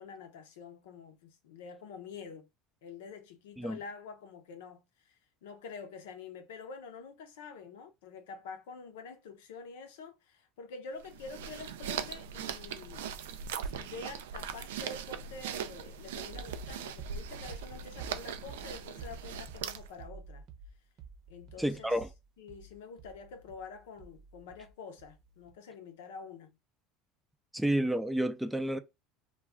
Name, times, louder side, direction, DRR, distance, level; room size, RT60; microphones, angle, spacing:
voice 1, 0.0-2.5 2.8-13.1 13.7-20.5 21.3-22.0 22.4-26.5, left 4 dB, 85° left, 0.6 m, -47 dB
sound 1, 11.0-20.0, right 8 dB, 90° right, 0.3 m, -40 dB
sound 2, 16.3-24.7 25.0-25.5, right 3 dB, 50° right, 0.8 m, -49 dB
voice 2, 21.6-22.1 27.5-28.8, right 1 dB, 5° right, 0.4 m, -30 dB
2.3 x 2.3 x 3.4 m
supercardioid pair, 100°, 0 cm